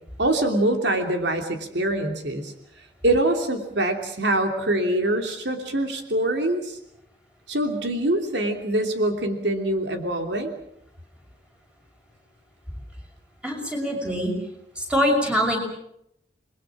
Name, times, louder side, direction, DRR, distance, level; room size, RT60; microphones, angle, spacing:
voice 1, 0.2-2.5 3.0-6.8 7.5-10.5, right 1 dB, 75° right, 5 dB, 3.0 m, -24 dB
voice 2, 13.4-14.3 14.8-15.6, equal, 5° right, 1 dB, 6.0 m, -23 dB
29.0 x 21.5 x 6.2 m, 0.74 s
head